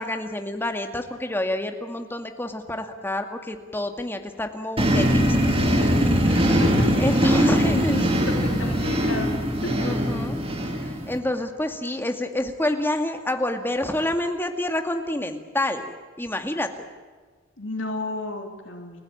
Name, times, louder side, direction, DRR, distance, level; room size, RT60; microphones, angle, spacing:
voice 1, 0.0-5.4 5.8-6.0 7.0-8.1 8.7-8.8 9.8-10.4 10.8-16.9, left 1 dB, 10° left, 5 dB, 2.2 m, -28 dB
sound 1, 4.8-11.2, equal, 30° right, 3.5 m, -21 dB
voice 2, 6.2-7.3 7.7-9.3 9.6-9.9 17.6-19.0, left 2 dB, 70° left, 3 dB, 3.4 m, -33 dB
30.0 x 16.0 x 8.9 m, 1.4 s
head